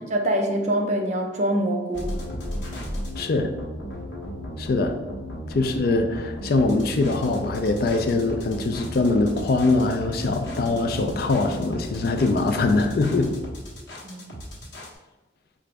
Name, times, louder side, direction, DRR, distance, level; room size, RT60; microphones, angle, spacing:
voice 1, 0.1-2.2 14.0-14.4, right 1 dB, 35° right, 2 dB, 0.5 m, -25 dB
sound 1, 1.9-15.0, equal, 75° left, 1.1 m, -34 dB
voice 2, 3.2-3.5 4.6-5.0 5.5-13.3, left 3 dB, 50° left, 6 dB, 0.3 m, -23 dB
4.8 x 2.5 x 3.3 m, 1.1 s
head